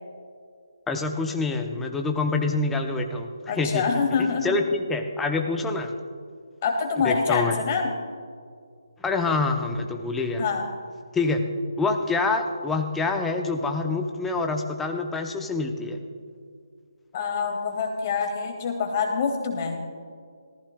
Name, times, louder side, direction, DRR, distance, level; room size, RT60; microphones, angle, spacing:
voice 1, 0.9-3.8 4.4-5.9 7.0-7.6 9.0-10.4 11.1-11.4 11.8-16.0, left 3 dB, 5° left, 4 dB, 0.8 m, -26 dB
voice 2, 3.5-4.6 6.6-7.9 10.4-10.6 17.1-19.8, left 5 dB, 30° left, 3 dB, 2.0 m, -25 dB
18.5 x 14.5 x 2.3 m, 2.2 s
figure-of-eight pair, 150°, 2 cm